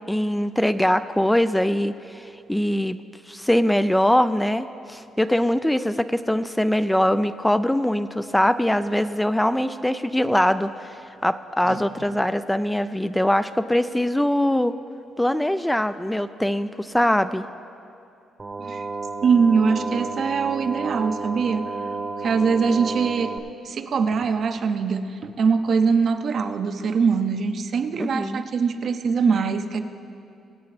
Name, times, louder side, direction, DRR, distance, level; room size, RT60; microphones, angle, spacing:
voice 1, 0.0-3.0 3.3-14.8 15.2-17.5 28.0-28.4, left 1 dB, 5° left, 11 dB, 0.3 m, -22 dB
sound 1, 18.4-23.4, right 3 dB, 30° right, 0.9 m, -31 dB
voice 2, 19.2-21.7 22.2-23.3 23.6-29.8, right 5 dB, 55° right, 8 dB, 0.6 m, -22 dB
22.5 x 8.3 x 3.3 m, 2.7 s
cardioid pair, 90°, 0 cm